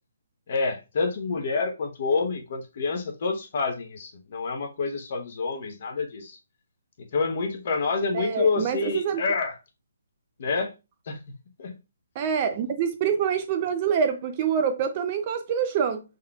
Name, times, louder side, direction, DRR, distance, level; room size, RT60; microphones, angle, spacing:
voice 1, 0.5-6.4 7.1-9.6 10.4-10.7 11.1-11.2 11.6-11.7, left 4 dB, 40° left, 0.9 m, -28 dB
voice 2, 8.1-9.2 12.2-16.0, right 7 dB, 25° right, 0.4 m, -26 dB
5.4 x 3.7 x 2.3 m
hypercardioid pair, 165°, 0 cm